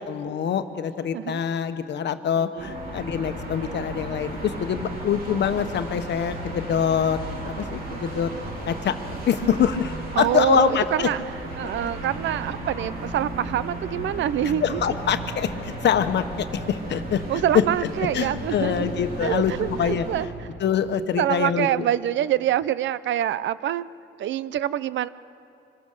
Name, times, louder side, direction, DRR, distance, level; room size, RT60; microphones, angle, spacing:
voice 1, 0.0-7.2 7.4-8.3 8.7-8.9 9.3-11.1 14.4-17.2 18.1-19.5 19.8-20.1 20.6-21.7, left 8 dB, 60° left, 9 dB, 1.1 m, -25 dB
voice 2, 2.4-3.0 10.2-11.2 11.6-14.8 17.3-18.9 19.2-20.3 21.2-23.9 24.2-25.1, right 11 dB, 70° right, 17 dB, 0.6 m, -25 dB
sound 1, 2.6-20.3, right 1 dB, 50° right, 4.3 m, -35 dB
24.5 x 16.0 x 6.7 m, 2.7 s
cardioid pair, 90°, 20 cm